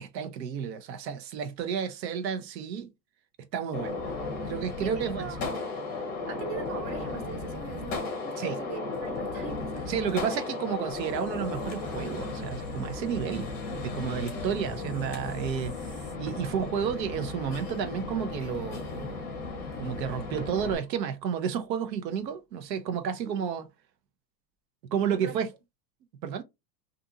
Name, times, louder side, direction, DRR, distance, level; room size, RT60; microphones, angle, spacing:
voice 1, 0.0-2.9 3.5-4.0 4.4-5.3 8.4-8.6 9.9-19.3 19.8-23.7 24.9-25.5 26.2-26.4, right 7 dB, 90° right, 0.8 m, -31 dB
Gunshot gunfire, 3.7-20.7, left 3 dB, 20° left, 0.6 m, -35 dB
voice 2, 4.8-5.7 6.3-9.9 14.0-14.5 23.3-23.4 25.0-25.4, right 7 dB, 45° right, 0.7 m, -42 dB
sound 1, 10.9-16.1, left 1 dB, 15° right, 0.9 m, -49 dB
sound 2, 16.3-17.8 20.4-22.2, right 7 dB, 65° right, 1.1 m, -49 dB
2.6 x 2.4 x 2.6 m
supercardioid pair, 150°, 49 cm